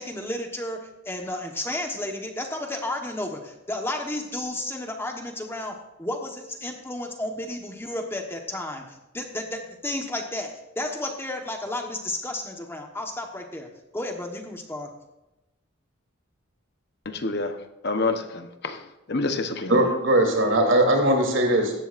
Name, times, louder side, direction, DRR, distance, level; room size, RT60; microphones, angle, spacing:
voice 1, 0.0-14.9, left 1 dB, 10° left, 3 dB, 1.2 m, -32 dB
voice 2, 17.1-17.5 17.8-18.8 19.1-19.8, left 3 dB, 50° left, 7 dB, 1.0 m, -27 dB
voice 3, 19.7-21.7, right 1 dB, 65° right, 1 dB, 3.2 m, -20 dB
17.0 x 13.5 x 2.6 m, 0.96 s
head